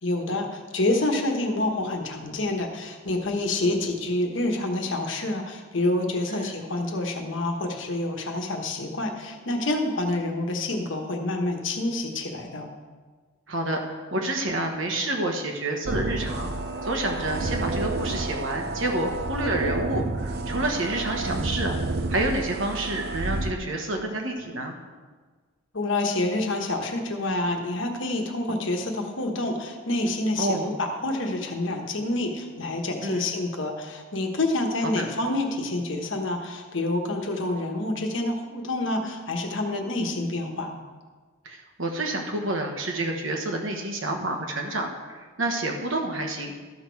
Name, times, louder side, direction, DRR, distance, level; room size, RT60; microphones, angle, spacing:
voice 1, 0.0-12.7 25.7-40.7, left 2 dB, 65° left, 3 dB, 1.2 m, -27 dB
voice 2, 13.5-16.5 16.8-21.8 22.1-24.7 30.4-30.7 33.0-33.3 34.9-35.0 41.4-46.7, right 1 dB, 70° right, 2 dB, 1.3 m, -29 dB
sound 1, 15.8-23.5, right 2 dB, 50° right, 0.6 m, -30 dB
13.0 x 6.2 x 4.7 m, 1.4 s
head